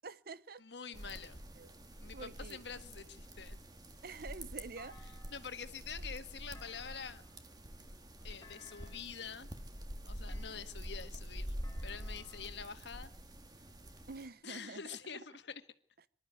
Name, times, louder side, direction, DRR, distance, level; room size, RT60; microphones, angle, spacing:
voice 1, 0.0-0.6 1.6-1.7 2.1-2.6 4.0-5.0 6.0-6.1 14.1-15.2, right 4 dB, 55° right, 0.8 m, -47 dB
voice 2, 0.6-1.4 2.0-3.6 5.3-7.2 8.2-9.5 10.1-11.6 11.8-13.1 14.4-15.6, left 6 dB, 70° left, 1.6 m, -46 dB
sound 1, 0.9-14.3, equal, 20° right, 1.7 m, -47 dB
Thump thud, 4.8-5.7 6.5-7.4 8.4-9.2 10.3-11.0 11.6-12.6, left 3 dB, 15° left, 3.8 m, -60 dB
25.0 x 12.5 x 9.4 m
head